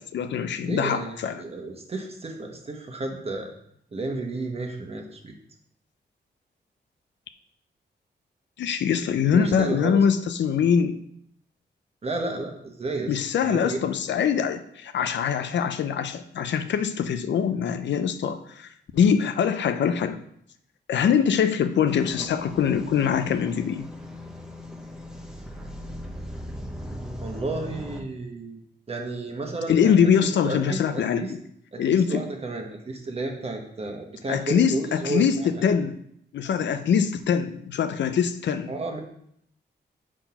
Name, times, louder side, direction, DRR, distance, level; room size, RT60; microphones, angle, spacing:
voice 1, 0.0-1.4 8.6-11.0 13.1-20.2 20.9-23.9 29.7-31.4 31.8-32.2 34.3-36.0 36.3-38.7, left 7 dB, 85° left, 10 dB, 0.5 m, -23 dB
voice 2, 0.6-3.5 3.9-5.3 9.3-10.0 12.0-13.8 27.2-28.6 28.9-31.3 31.7-35.2 35.6-35.7 38.7-39.0, right 2 dB, 35° right, 2 dB, 1.1 m, -32 dB
sound 1, 21.9-28.0, equal, 5° right, 0.7 m, -38 dB
5.9 x 4.5 x 5.7 m, 0.71 s
wide cardioid pair, 155°, 18 cm